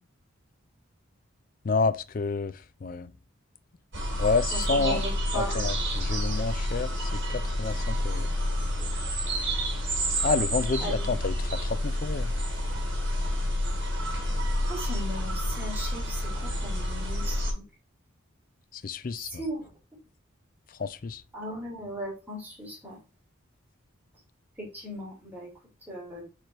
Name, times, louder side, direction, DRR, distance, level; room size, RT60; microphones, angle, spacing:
voice 1, 1.6-2.5 2.8-3.1 4.2-5.0 5.3-8.3 10.2-12.3 18.7-19.3 20.8-21.2, left 4 dB, 40° left, 0.4 m, -29 dB
sound 1, 3.9-17.5, equal, 60° right, 2.7 m, -29 dB
voice 2, 4.5-5.6 10.8-11.1 14.6-17.6 19.3-19.7 21.3-23.0 24.6-25.5 25.9-26.2, equal, 10° right, 2.7 m, -37 dB
5.0 x 4.4 x 4.5 m
head